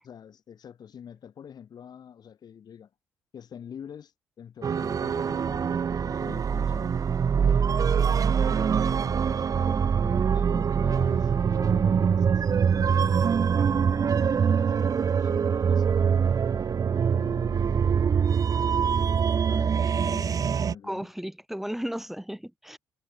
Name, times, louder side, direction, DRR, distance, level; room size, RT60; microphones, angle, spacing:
voice 1, 0.0-2.9 3.3-7.0 7.5-13.2 13.7-16.4 17.1-18.5 19.4-21.1, left 8 dB, 50° left, 2.6 m, -45 dB
sound 1, 4.6-20.7, right 7 dB, 45° right, 0.9 m, -24 dB
voice 2, 20.8-22.8, equal, 5° right, 2.7 m, -34 dB
hypercardioid pair, 55°, 9 cm